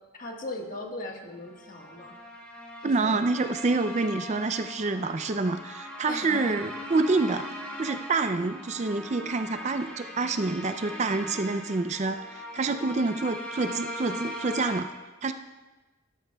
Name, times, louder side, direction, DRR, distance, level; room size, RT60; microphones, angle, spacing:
voice 1, 0.1-2.1 2.8-3.2 6.1-6.6, left 2 dB, 40° left, 1 dB, 1.5 m, -38 dB
sound 1, 1.4-14.8, equal, 5° left, 1.7 m, -40 dB
voice 2, 2.8-7.5 7.8-14.9 15.2-15.3, right 3 dB, 35° right, 9 dB, 0.4 m, -27 dB
17.5 x 13.0 x 2.3 m, 1.2 s
head